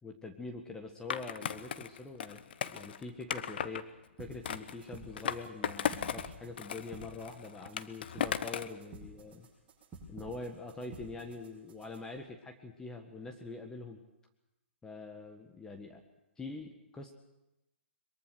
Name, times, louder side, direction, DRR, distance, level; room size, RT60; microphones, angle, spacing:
voice 1, 0.0-3.9 4.2-9.5 10.1-14.0 14.8-16.0 16.4-17.1, left 3 dB, 10° left, 3 dB, 1.6 m, -44 dB
Skateboard, 1.1-3.8 4.5-6.3 6.6-8.8, left 9 dB, 55° left, 1.0 m, -36 dB
sound 1, 4.2-12.2, right 2 dB, 15° right, 7.9 m, -52 dB
22.5 x 22.5 x 6.4 m, 0.92 s
figure-of-eight pair, 125°, 7 cm